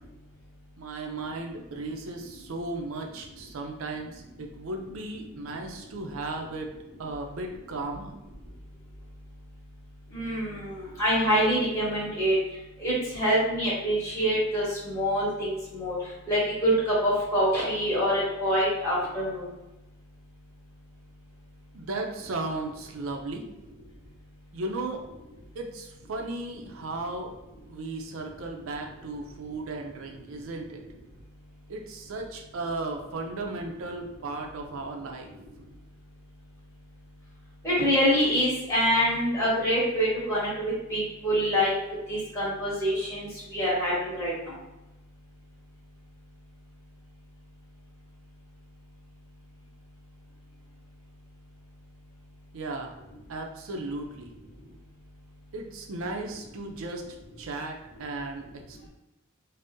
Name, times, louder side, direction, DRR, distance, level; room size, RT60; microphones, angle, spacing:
voice 1, 0.8-6.7 7.0-8.2 21.7-23.4 24.5-25.0 25.5-27.3 27.7-30.8 31.7-35.3 52.5-52.9 53.3-54.3 55.5-57.0 57.4-58.9, right 2 dB, 70° right, 2 dB, 0.5 m, -35 dB
voice 2, 10.1-12.4 12.8-16.0 16.3-19.5 37.6-41.7 42.1-44.5, equal, 10° left, -8 dB, 1.0 m, -25 dB
2.6 x 2.0 x 3.5 m, 0.99 s
head